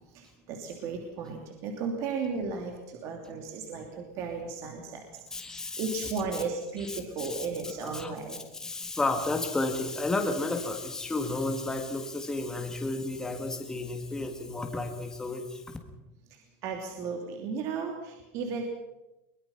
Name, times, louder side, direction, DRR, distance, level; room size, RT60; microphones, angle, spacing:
voice 1, 0.1-8.4 16.3-18.6, right 5 dB, 40° right, 2 dB, 3.0 m, -35 dB
voice 2, 5.3-6.1 6.8-8.1 8.5-15.6, left 2 dB, 5° left, 4 dB, 1.7 m, -32 dB
22.5 x 21.5 x 5.8 m, 0.95 s
supercardioid pair, 170°, 8 cm